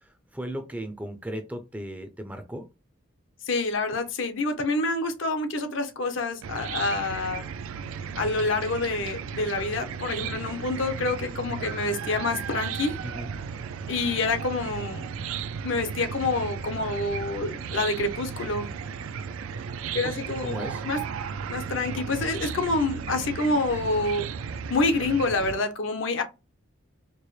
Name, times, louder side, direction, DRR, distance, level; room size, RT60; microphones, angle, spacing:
voice 1, 0.0-2.6 13.0-13.3 20.0-20.1 20.4-20.8, right 1 dB, 5° right, 0.4 m, -36 dB
voice 2, 3.5-7.4 8.2-13.0 13.9-15.0 15.6-18.7 19.9-21.0 21.5-24.3 24.7-26.2, left 3 dB, 70° left, 0.7 m, -27 dB
Chicken rooster / Cricket, 6.4-25.5, right 6 dB, 85° right, 0.3 m, -35 dB
4.4 x 2.0 x 3.1 m
head